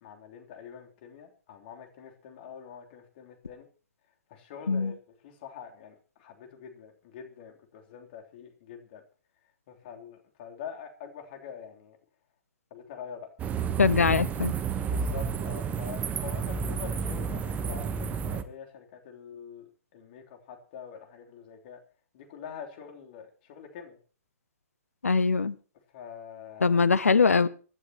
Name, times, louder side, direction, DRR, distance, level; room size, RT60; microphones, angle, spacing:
voice 1, 0.0-3.7 4.3-5.0 5.2-9.0 9.7-12.0 12.7-13.3 14.8-21.8 22.1-24.0 25.9-26.8, left 7 dB, 45° left, 3.3 m, -45 dB
sound 1, 13.4-18.4, right 6 dB, 20° right, 1.1 m, -31 dB
voice 2, 13.8-14.5 25.0-25.5 26.6-27.5, left 4 dB, 75° left, 0.8 m, -22 dB
25.0 x 11.5 x 3.0 m
figure-of-eight pair, 115°, 8 cm